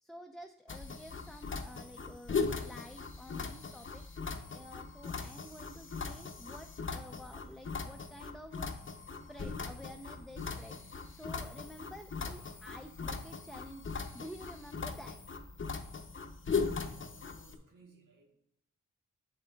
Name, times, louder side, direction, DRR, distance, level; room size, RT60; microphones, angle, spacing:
voice 1, 0.0-4.0 4.5-8.7 9.3-10.8 11.1-15.2, equal, ahead, 5 dB, 0.5 m, -50 dB
sound 1, 0.7-17.6, left 4 dB, 40° left, 0.7 m, -39 dB
voice 2, 16.7-18.3, right 4 dB, 80° right, 2 dB, 1.4 m, -61 dB
7.8 x 7.5 x 2.3 m, 0.77 s
cardioid pair, 50°, 32 cm